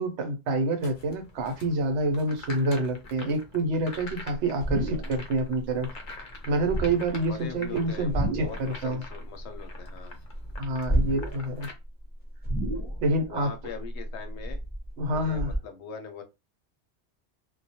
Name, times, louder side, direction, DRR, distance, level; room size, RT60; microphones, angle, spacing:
voice 1, 0.0-5.9 6.5-9.0 10.6-11.7 13.0-13.5 15.0-15.5, right 2 dB, 75° right, 0.9 m, -27 dB
sound 1, 0.8-11.7, left 3 dB, 50° left, 0.7 m, -46 dB
sound 2, 4.0-5.4 5.7-6.1 6.6-7.3 8.0-8.7 9.0-10.0 10.3-11.6 11.9-12.0 12.4-13.3 13.7-15.6, right 1 dB, 10° left, 0.5 m, -30 dB
voice 2, 7.3-10.2 13.3-14.6 15.1-16.2, left 6 dB, 80° left, 0.9 m, -41 dB
2.3 x 2.1 x 2.7 m
omnidirectional pair, 1.2 m